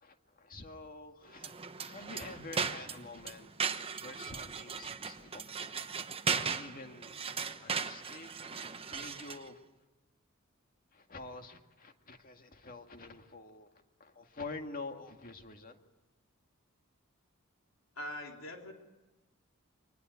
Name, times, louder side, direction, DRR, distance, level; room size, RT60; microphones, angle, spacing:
voice 1, 0.0-3.5 3.8-5.5 5.7-6.0 6.2-7.2 7.6-8.3 8.9-9.6 10.9-13.7 14.0-15.8, left 3 dB, 45° left, 5 dB, 2.1 m, -47 dB
sound 1, 1.3-9.5, right 5 dB, 30° right, 1.1 m, -37 dB
voice 2, 18.0-18.7, equal, 80° left, 2 dB, 3.4 m, -42 dB
25.0 x 20.0 x 9.5 m, 1.1 s
head